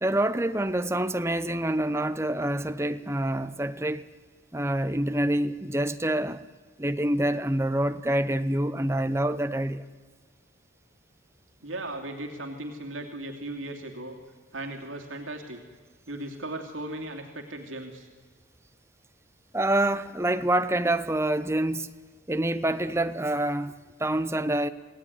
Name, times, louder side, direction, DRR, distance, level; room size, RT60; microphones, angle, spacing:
voice 1, 0.0-4.1 4.5-6.4 6.8-9.8 19.5-21.9 22.3-23.7 24.0-24.7, right 1 dB, 15° right, 0.9 m, -26 dB
voice 2, 11.6-14.2 14.5-15.6 16.1-18.1, right 1 dB, 85° right, 2.8 m, -37 dB
28.0 x 18.0 x 9.6 m
head